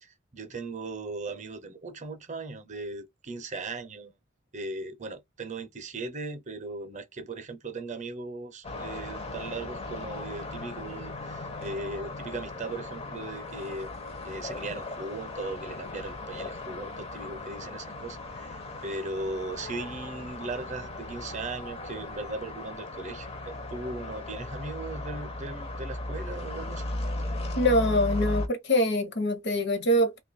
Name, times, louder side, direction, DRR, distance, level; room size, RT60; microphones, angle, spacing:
voice 1, 0.0-4.1 4.5-13.9 14.2-26.9, right 3 dB, 40° right, 0.6 m, -38 dB
sound 1, 8.6-28.5, left 2 dB, 30° left, 0.6 m, -37 dB
voice 2, 27.6-30.2, equal, 60° left, 0.8 m, -24 dB
3.0 x 2.3 x 3.9 m
head